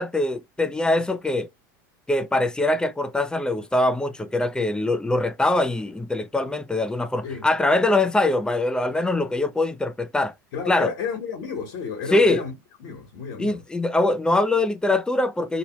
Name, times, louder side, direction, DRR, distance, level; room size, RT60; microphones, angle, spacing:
voice 1, 0.0-1.5 2.1-10.3 10.7-10.9 12.1-12.4 13.4-15.6, left 2 dB, 10° left, 0.4 m, -23 dB
voice 2, 10.5-12.5 12.8-13.6, left 6 dB, 65° left, 1.2 m, -31 dB
2.9 x 2.1 x 3.0 m
hypercardioid pair, 95°, 10 cm